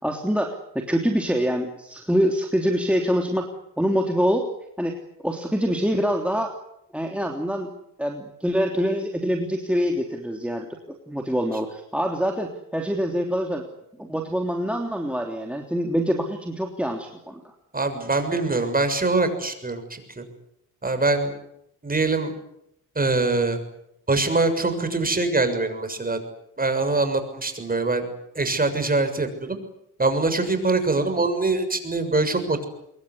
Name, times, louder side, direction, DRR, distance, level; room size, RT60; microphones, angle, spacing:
voice 1, 0.0-3.5 3.8-4.5 4.8-6.5 6.9-7.7 8.0-10.7 11.1-13.6 14.0-17.4, equal, 5° right, 2 dB, 3.2 m, -25 dB
voice 2, 17.7-20.2 20.8-21.3 21.8-22.3 23.0-23.6 24.1-26.2 26.6-28.1 28.4-29.6 30.0-32.7, right 3 dB, 20° right, 8 dB, 6.9 m, -23 dB
25.5 x 22.5 x 9.7 m, 0.79 s
cardioid pair, 85°, 40 cm